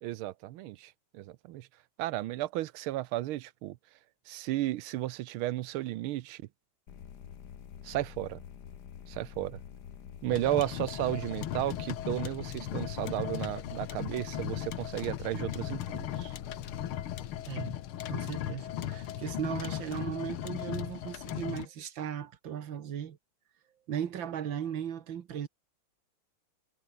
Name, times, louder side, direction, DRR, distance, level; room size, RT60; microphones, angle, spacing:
voice 1, 0.0-1.7 2.0-3.8 4.3-6.4 7.8-8.4 9.1-9.6 10.2-16.3, right 15 dB, 85° right, 1.5 m, -34 dB
sound 1, 6.9-17.4, left 8 dB, 55° left, 1.7 m, -47 dB
sound 2, 10.3-21.7, left 11 dB, 85° left, 2.0 m, -37 dB
voice 2, 17.5-17.8 18.1-23.2 23.9-25.5, right 9 dB, 65° right, 2.1 m, -37 dB
omnidirectional pair, 2.3 m